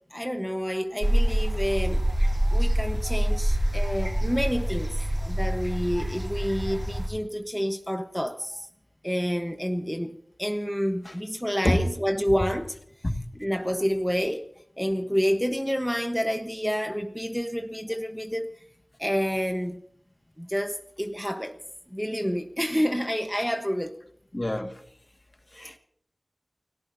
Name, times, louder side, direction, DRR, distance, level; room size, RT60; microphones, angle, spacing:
voice 1, 0.1-2.1 2.5-8.7 9.0-12.8 13.4-14.5 14.8-18.5 19.0-19.8 20.4-21.6 21.9-24.0, equal, ahead, 1.2 m, -28 dB
sound 1, 1.0-7.1, equal, 20° right, 6.0 m, -25 dB
voice 2, 24.3-24.8 25.5-25.8, left 1 dB, 35° left, 1.9 m, -26 dB
29.5 x 17.0 x 2.8 m
wide cardioid pair, 55°, 0 cm